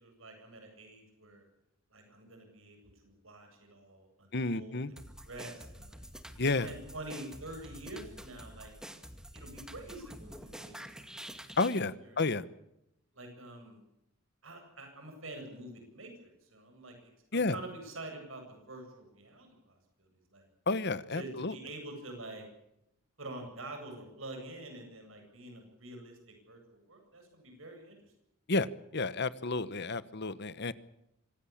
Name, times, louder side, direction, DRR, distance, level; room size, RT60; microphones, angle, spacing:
voice 1, 0.0-1.4 1.9-5.0 5.2-6.0 6.6-8.7 9.3-10.8 11.0-11.4 12.0-12.2 13.1-13.8 14.4-20.5 21.1-22.5 23.2-28.0, right 2 dB, 75° right, 4 dB, 8.0 m, -47 dB
voice 2, 4.3-4.9 6.4-6.7 11.6-12.4 17.3-17.6 20.7-21.6 28.5-28.7 28.9-30.7, left 3 dB, 55° left, 16 dB, 1.1 m, -31 dB
sound 1, 5.0-11.8, equal, 5° right, 2.2 m, -48 dB
26.0 x 17.5 x 8.6 m, 0.84 s
head